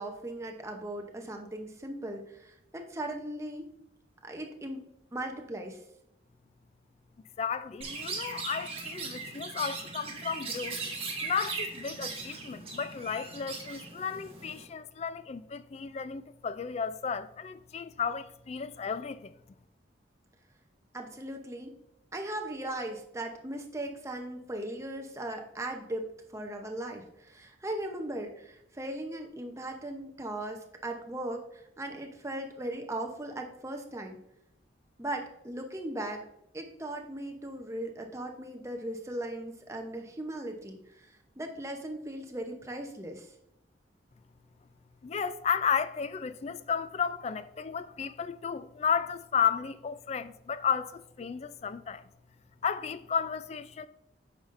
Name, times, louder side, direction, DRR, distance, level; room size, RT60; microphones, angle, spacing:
voice 1, 0.0-3.7 4.2-5.8 20.9-21.7 22.1-26.1 26.3-34.2 35.0-36.2 36.5-43.3, right 1 dB, 15° right, 0.7 m, -38 dB
voice 2, 7.4-10.8 11.2-19.3 45.0-52.0 52.6-53.9, left 7 dB, 35° left, 0.3 m, -33 dB
Chirp tweet, 7.8-14.6, right 4 dB, 35° right, 1.1 m, -39 dB
8.8 x 5.5 x 2.6 m
head